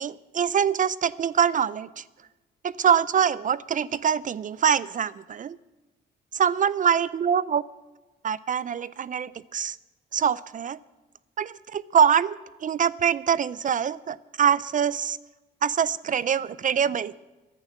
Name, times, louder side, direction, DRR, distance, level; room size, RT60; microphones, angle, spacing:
voice 1, 0.0-2.0 2.6-5.6 6.3-7.6 8.2-9.8 10.1-10.8 11.4-15.2 15.6-17.2, right 8 dB, 40° right, 20 dB, 0.4 m, -24 dB
13.5 x 10.5 x 7.2 m, 1.2 s
cardioid pair, 90°, 20 cm